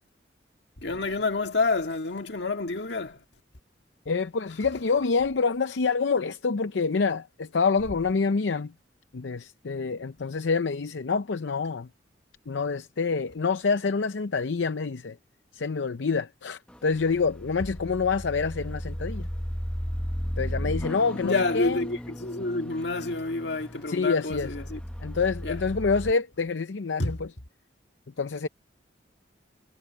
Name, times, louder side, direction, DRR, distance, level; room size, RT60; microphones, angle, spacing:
voice 1, 0.8-3.2 21.2-24.8 25.4-25.6 27.0-27.1, left 3 dB, 70° left, 1.8 m, -28 dB
voice 2, 4.1-8.7 9.1-11.9 12.5-15.2 15.5-19.3 20.4-21.9 23.9-24.5 25.0-27.3 28.2-28.5, left 4 dB, 90° left, 0.6 m, -27 dB
sound 1, 16.7-26.1, equal, 5° left, 0.9 m, -35 dB
head